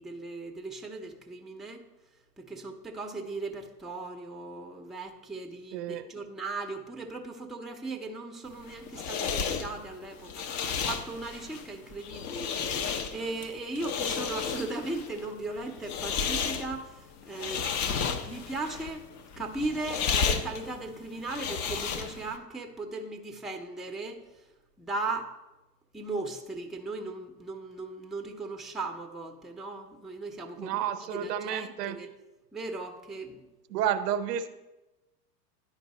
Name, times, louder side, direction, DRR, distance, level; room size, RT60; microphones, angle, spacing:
voice 1, 0.0-1.8 2.4-19.1 19.4-24.2 24.8-25.3 25.9-32.1 32.5-33.4, right 3 dB, ahead, 3 dB, 0.6 m, -38 dB
voice 2, 5.7-6.0 30.6-32.0 33.7-34.5, right 9 dB, 70° right, 11 dB, 0.8 m, -30 dB
sound 1, 8.5-22.4, left 6 dB, 35° left, 0.7 m, -33 dB
10.5 x 4.6 x 4.1 m, 1.0 s
hypercardioid pair, 95°, 50 cm